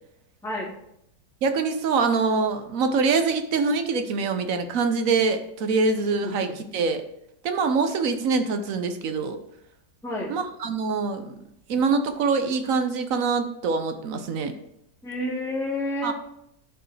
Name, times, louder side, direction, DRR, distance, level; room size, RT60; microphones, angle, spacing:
voice 1, 0.4-0.7 6.2-6.6 10.0-10.3 15.0-16.1, left 1 dB, ahead, -6 dB, 2.0 m, -30 dB
voice 2, 1.4-7.0 7.4-9.4 10.3-11.4 11.7-14.5 16.0-16.1, right 4 dB, 60° right, 7 dB, 1.1 m, -24 dB
11.5 x 4.6 x 3.3 m, 0.78 s
omnidirectional pair, 1.8 m